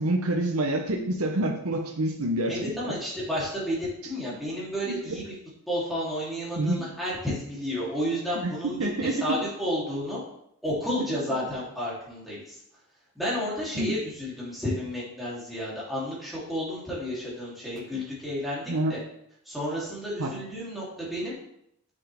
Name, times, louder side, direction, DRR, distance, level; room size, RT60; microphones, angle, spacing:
voice 1, 0.0-2.9 4.8-5.2 6.6-6.9 8.3-8.5 8.8-9.1 13.7-14.0 18.7-19.0 20.2-20.3, right 1 dB, 70° right, 2 dB, 0.8 m, -27 dB
voice 2, 2.5-5.2 5.7-10.2 10.6-12.6 13.1-19.0 19.4-21.3, equal, ahead, -8 dB, 3.1 m, -31 dB
7.1 x 6.8 x 3.5 m, 0.75 s
head